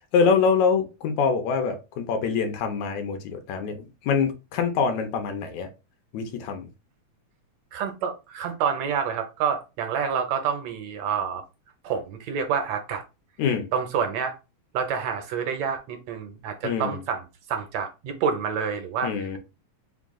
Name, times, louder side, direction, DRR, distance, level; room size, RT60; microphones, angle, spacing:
voice 1, 0.1-5.7 6.1-6.7 13.4-13.7 16.6-17.0 19.0-19.4, left 5 dB, 75° left, 2.1 m, -25 dB
voice 2, 7.7-11.4 11.8-13.0 13.7-14.4 14.7-19.4, right 7 dB, 75° right, 1.8 m, -28 dB
5.0 x 2.3 x 3.6 m
omnidirectional pair, 3.3 m